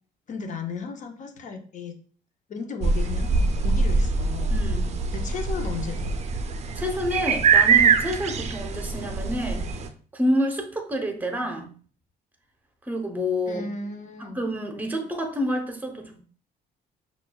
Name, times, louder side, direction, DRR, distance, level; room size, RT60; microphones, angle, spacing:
voice 1, 0.3-1.9 2.5-4.5 5.1-6.1 13.5-14.4, left 5 dB, 45° left, 5 dB, 0.8 m, -35 dB
sound 1, 2.8-9.9, right 5 dB, 40° right, 0.4 m, -23 dB
voice 2, 4.5-4.9 6.8-9.7 10.1-11.7 12.8-13.6 14.2-16.2, equal, 10° right, 3 dB, 0.8 m, -28 dB
6.0 x 2.4 x 2.3 m, 0.42 s
cardioid pair, 110°, 17 cm